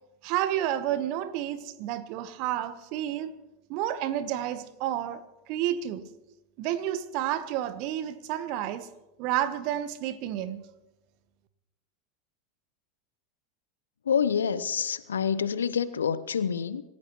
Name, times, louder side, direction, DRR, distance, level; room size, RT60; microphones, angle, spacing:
voice 1, 0.2-3.3 3.7-6.1 6.6-8.9 9.2-10.6, right 12 dB, 50° right, 1.1 m, -30 dB
voice 2, 14.0-16.8, left 7 dB, 75° left, 0.7 m, -27 dB
27.0 x 15.0 x 3.1 m
figure-of-eight pair, 85°, 0 cm